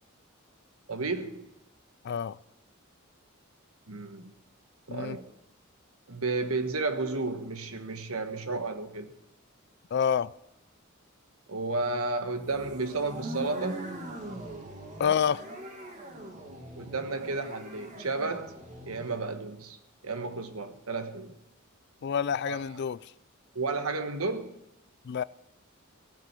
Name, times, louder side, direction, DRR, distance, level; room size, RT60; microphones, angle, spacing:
voice 1, 0.9-1.5 3.9-4.3 4.9-5.3 6.1-9.1 11.5-13.9 16.8-18.5 18.9-19.8 20.0-21.3 22.5-22.6 23.5-24.5, right 3 dB, 90° right, 1.3 m, -32 dB
voice 2, 2.0-2.4 4.9-5.2 9.9-10.3 15.0-15.4 22.0-23.0 25.1-25.2, left 7 dB, 50° left, 0.4 m, -27 dB
sound 1, 12.4-19.2, right 1 dB, 35° right, 2.2 m, -41 dB
17.0 x 6.2 x 8.3 m
head